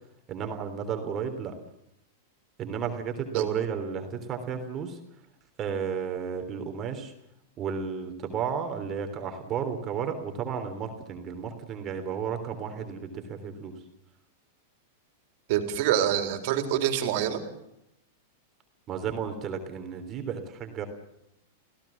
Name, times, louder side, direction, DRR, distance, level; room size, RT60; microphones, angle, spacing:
voice 1, 0.3-1.5 2.6-5.0 5.6-7.1 7.6-13.7 18.9-20.8, right 7 dB, 35° right, 5 dB, 3.4 m, -33 dB
voice 2, 15.5-17.4, right 10 dB, 60° right, 6 dB, 3.8 m, -26 dB
26.5 x 17.0 x 7.4 m, 0.82 s
hypercardioid pair, 110°, 0 cm